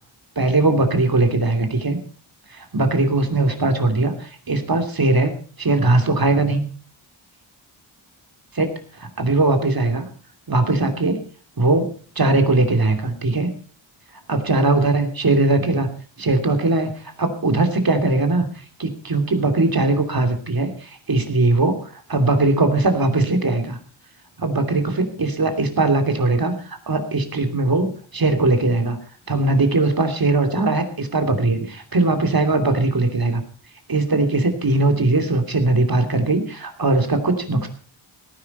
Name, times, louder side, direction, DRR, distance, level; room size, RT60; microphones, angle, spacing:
voice 1, 0.4-2.0 2.5-6.6 8.5-8.7 9.0-10.0 10.5-11.2 11.6-11.9 12.2-13.5 14.3-15.9 16.2-16.9 17.2-18.5 18.8-21.8 22.1-23.8 24.4-29.0 29.3-33.4 33.9-37.7, right 2 dB, 45° right, 7 dB, 3.0 m, -20 dB
18.0 x 10.5 x 5.4 m, 0.41 s
wide cardioid pair, 90°, 49 cm